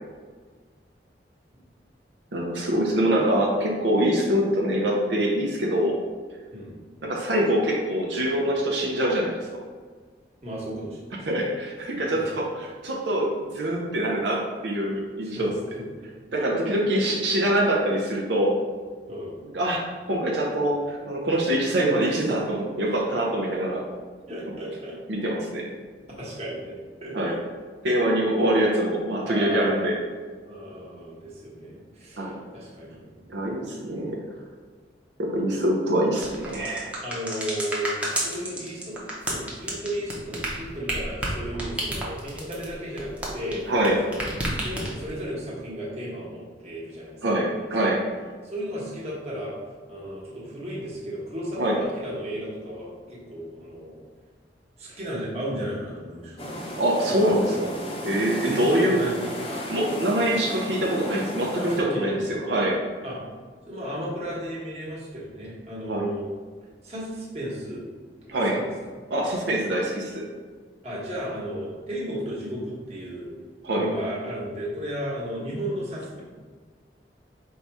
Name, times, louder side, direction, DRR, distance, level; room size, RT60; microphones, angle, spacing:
voice 1, 2.3-6.0 7.0-9.3 11.3-15.5 16.3-18.5 19.4-23.8 25.1-25.6 27.1-27.4 27.8-29.9 32.2-32.3 33.3-34.2 35.2-36.9 41.5-41.6 43.7-44.0 47.2-48.0 51.6-51.8 56.8-57.7 58.0-59.0 59.7-62.8 65.9-66.1 68.3-68.6 69.1-70.3 73.6-73.9, right 1 dB, 85° right, -2 dB, 0.6 m, -24 dB
voice 2, 10.4-11.3 12.1-12.2 15.2-15.5 15.8-15.9 16.4-17.0 19.1-19.4 24.3-25.0 26.2-27.4 28.4-28.7 29.2-29.9 30.5-33.6 37.0-43.6 44.0-44.2 44.6-47.4 48.4-49.5 49.9-54.0 54.8-56.5 57.2-57.6 58.4-59.4 61.5-62.4 63.0-63.2 63.7-66.3 66.8-67.9 68.3-68.7 70.8-73.3 73.7-76.2, equal, 35° right, -6 dB, 1.1 m, -34 dB
sound 1, 36.2-43.9 44.1-45.2, right 1 dB, 5° right, 0.6 m, -30 dB
sound 2, 56.4-61.8, left 1 dB, 30° left, 0.6 m, -34 dB
4.7 x 2.3 x 4.1 m, 1.5 s
head